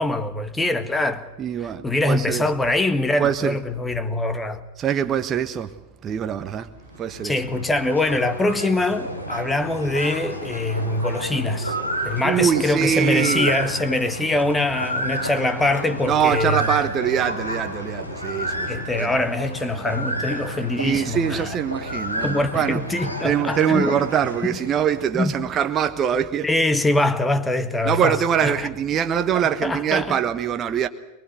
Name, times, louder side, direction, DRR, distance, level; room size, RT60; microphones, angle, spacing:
voice 1, 0.0-1.3 1.6-4.6 7.2-11.8 12.0-16.8 18.7-21.6 22.2-24.0 24.4-24.6 25.1-25.3 26.4-28.7 29.6-30.2, left 2 dB, 10° left, 1.8 m, -23 dB
voice 2, 1.4-2.4 3.2-3.5 4.8-5.7 6.0-6.7 7.0-7.3 12.2-13.5 16.1-18.7 19.0-19.1 20.8-22.8 23.2-26.5 27.8-30.9, right 8 dB, 25° right, 1.2 m, -23 dB
sound 1, 6.8-25.2, equal, 90° left, 3.6 m, -31 dB
23.0 x 23.0 x 8.1 m
figure-of-eight pair, 90°, 0 cm